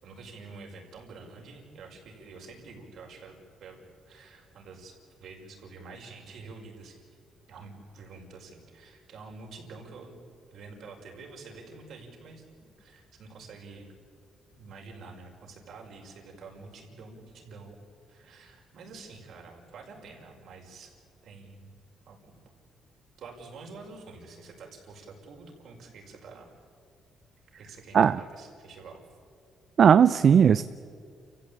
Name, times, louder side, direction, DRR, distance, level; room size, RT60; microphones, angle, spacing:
voice 1, 0.0-3.8 4.1-7.0 7.5-10.2 10.5-13.9 14.5-17.8 18.1-20.9 21.2-21.7 22.1-22.2 23.2-26.5 27.6-29.2, right 4 dB, 70° right, 0 dB, 5.7 m, -47 dB
voice 2, 29.8-30.6, right 7 dB, 55° right, 14 dB, 0.5 m, -17 dB
29.5 x 15.5 x 8.9 m, 2.1 s
cardioid pair, 90°, 0 cm